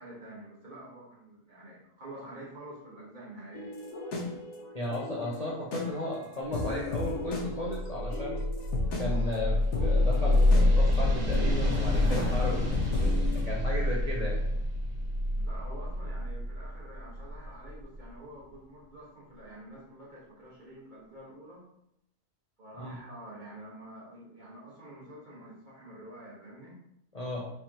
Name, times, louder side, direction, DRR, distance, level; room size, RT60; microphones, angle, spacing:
voice 1, 0.0-3.7 15.4-21.7 22.6-26.8, right 1 dB, 35° right, -6 dB, 1.5 m, -48 dB
sound 1, 3.5-13.4, left 2 dB, 80° left, 1.3 m, -37 dB
voice 2, 4.7-8.4 9.0-12.7 13.3-14.6 22.8-23.0 27.1-27.5, left 1 dB, 35° left, -5 dB, 0.7 m, -35 dB
sound 2, 7.3-17.9, left 1 dB, 80° right, 2.1 m, -27 dB
4.9 x 3.5 x 2.9 m, 0.76 s
omnidirectional pair, 1.5 m